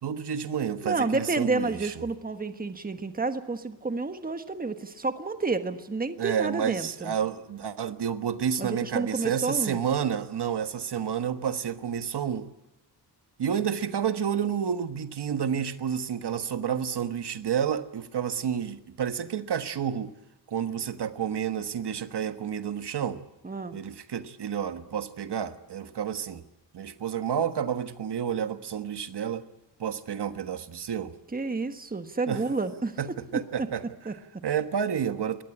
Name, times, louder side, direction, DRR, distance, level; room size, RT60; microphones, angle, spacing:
voice 1, 0.0-1.9 6.2-12.5 13.4-20.1 20.5-23.2 23.7-26.4 26.7-29.4 29.8-31.1 32.3-32.4 33.0-33.8 34.4-35.4, right 8 dB, 75° right, 10 dB, 1.4 m, -30 dB
voice 2, 0.8-7.1 8.6-9.8 23.4-23.8 31.3-33.0 33.6-33.7 34.0-34.4, right 3 dB, 20° right, 9 dB, 1.4 m, -30 dB
22.0 x 18.5 x 9.8 m, 0.99 s
wide cardioid pair, 150°, 41 cm